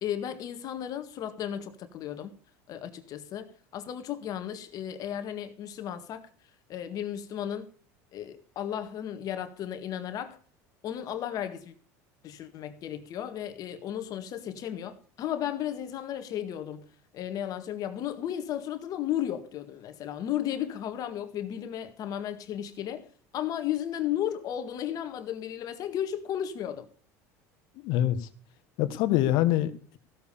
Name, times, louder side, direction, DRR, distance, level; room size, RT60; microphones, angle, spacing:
voice 1, 0.0-2.3 2.7-6.3 6.7-7.7 8.1-10.4 10.8-11.7 12.2-16.9 17.1-23.1 23.3-26.9, left 10 dB, 50° left, 1.8 m, -34 dB
voice 2, 27.8-28.3 28.8-30.0, left 13 dB, 65° left, 1.5 m, -25 dB
15.5 x 7.3 x 6.9 m
supercardioid pair, 110°, 8 cm